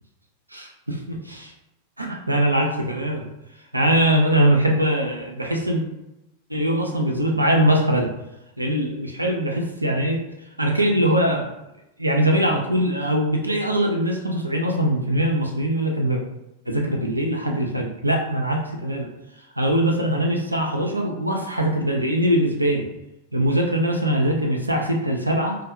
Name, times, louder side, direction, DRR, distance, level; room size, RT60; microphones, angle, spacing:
voice 1, 0.5-1.5 2.0-3.3 3.7-5.8 6.5-8.1 8.6-10.2 10.6-11.6 12.0-16.2 16.7-19.1 19.6-22.9 23.3-25.6, right 1 dB, 85° right, 0 dB, 0.3 m, -22 dB
2.4 x 2.1 x 2.5 m, 0.90 s
figure-of-eight pair, 90°, 0 cm